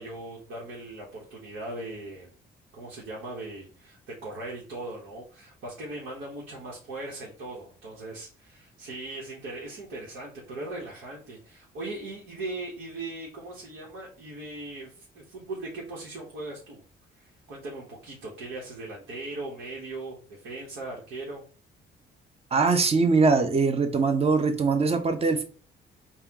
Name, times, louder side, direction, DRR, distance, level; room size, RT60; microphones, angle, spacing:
voice 1, 0.0-2.3 2.7-16.8 17.2-21.4, right 2 dB, 90° right, -4 dB, 1.2 m, -39 dB
voice 2, 22.5-25.4, right 4 dB, 30° right, 6 dB, 0.8 m, -22 dB
4.2 x 2.4 x 3.6 m, 0.40 s
cardioid pair, 90°, 20 cm